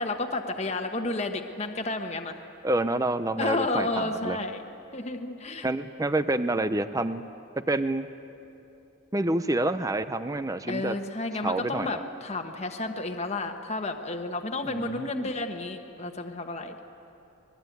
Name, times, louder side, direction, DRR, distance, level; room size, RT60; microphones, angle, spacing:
voice 1, 0.0-2.4 3.4-4.6 4.9-5.7 10.7-16.8, left 2 dB, 30° left, 3 dB, 1.2 m, -31 dB
voice 2, 2.6-4.4 5.6-7.2 7.6-8.1 9.1-11.0 11.4-12.0 14.6-15.3, right 2 dB, 15° right, 11 dB, 0.5 m, -28 dB
26.0 x 21.0 x 9.3 m, 2.8 s
head